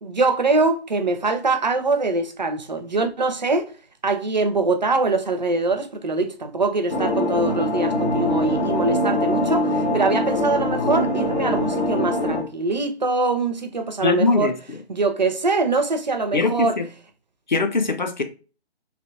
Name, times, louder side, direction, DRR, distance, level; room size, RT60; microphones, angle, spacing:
voice 1, 0.0-3.7 4.0-14.5 14.9-16.8, right 3 dB, 45° right, 0.4 m, -23 dB
sound 1, 6.9-12.4, left 1 dB, 80° left, 1.1 m, -23 dB
voice 2, 14.0-14.8 16.3-16.9 17.5-18.2, left 3 dB, 45° left, 0.5 m, -21 dB
3.2 x 2.5 x 2.6 m
figure-of-eight pair, 150°, 32 cm